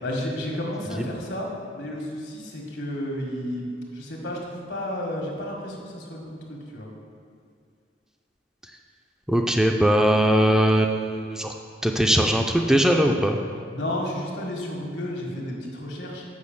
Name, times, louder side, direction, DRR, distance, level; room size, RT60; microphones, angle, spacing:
voice 1, 0.0-3.7 3.9-6.9 13.7-16.2, left 1 dB, 75° left, 0 dB, 1.7 m, -32 dB
voice 2, 9.3-11.5 11.8-13.4, equal, 5° right, 2 dB, 0.4 m, -20 dB
6.3 x 5.7 x 7.2 m, 2.2 s
head